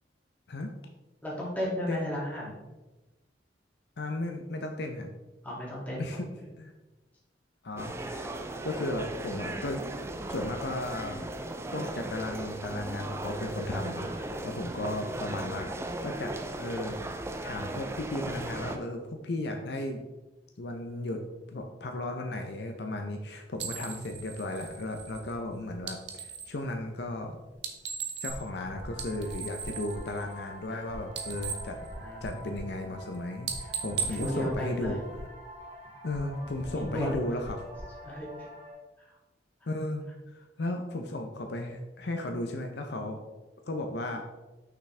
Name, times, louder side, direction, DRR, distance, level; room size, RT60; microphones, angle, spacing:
voice 1, 1.2-2.6 5.4-6.2 14.6-15.2 23.9-24.1 31.9-32.6 33.9-35.0 36.7-37.2 38.0-38.3 39.0-39.1, equal, 10° left, -6 dB, 2.2 m, -35 dB
voice 2, 4.0-5.1 6.0-6.3 6.6-6.7 7.6-8.4 8.6-9.8 10.3-11.3 11.7-15.7 16.0-17.0 17.4-20.0 20.6-21.2 21.5-27.4 28.2-31.8 32.2-35.0 36.0-37.6 39.7-40.0 40.3-43.2 43.7-44.2, left 2 dB, 65° left, 4 dB, 0.6 m, -35 dB
sound 1, 7.8-18.8, right 2 dB, 15° right, 0.4 m, -37 dB
Brass bullet shell casing drop onto concrete multiple takes, 23.6-26.6 27.5-28.6 28.9-30.8 31.0-32.6 32.9-33.2 33.4-35.3, right 7 dB, 75° right, 0.8 m, -38 dB
sound 2, 28.3-38.7, equal, 35° right, 1.7 m, -44 dB
6.0 x 5.9 x 3.3 m, 1.1 s
head